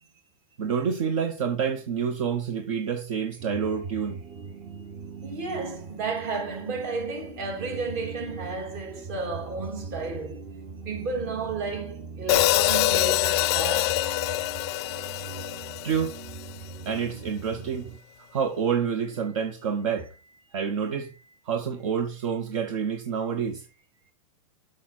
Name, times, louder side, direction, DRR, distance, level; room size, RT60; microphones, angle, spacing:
voice 1, 0.6-4.2 15.8-16.2 16.8-23.7, right 7 dB, 65° right, 1.2 m, -28 dB
sound 1, 3.4-18.0, right 4 dB, 30° right, 0.8 m, -40 dB
voice 2, 5.2-10.4 10.8-14.0, right 4 dB, 45° right, 3.1 m, -32 dB
Hi-hat, 12.3-16.5, left 18 dB, 50° left, 0.4 m, -25 dB
7.0 x 6.5 x 4.4 m
supercardioid pair, 150°, 18 cm